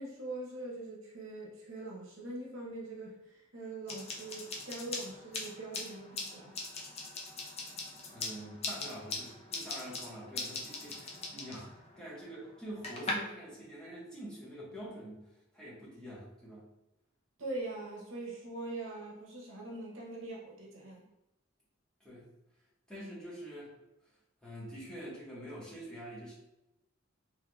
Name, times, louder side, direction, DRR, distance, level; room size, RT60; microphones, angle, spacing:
voice 1, 0.0-6.6 17.4-21.0, right 2 dB, 70° right, -2 dB, 0.9 m, -42 dB
sound 1, 3.9-13.1, left 3 dB, 30° left, 0.6 m, -41 dB
voice 2, 8.1-15.2 15.5-16.7 22.0-22.3 22.9-23.8 24.4-26.3, right 1 dB, 5° left, -8 dB, 1.2 m, -46 dB
3.5 x 3.1 x 2.3 m, 0.90 s
head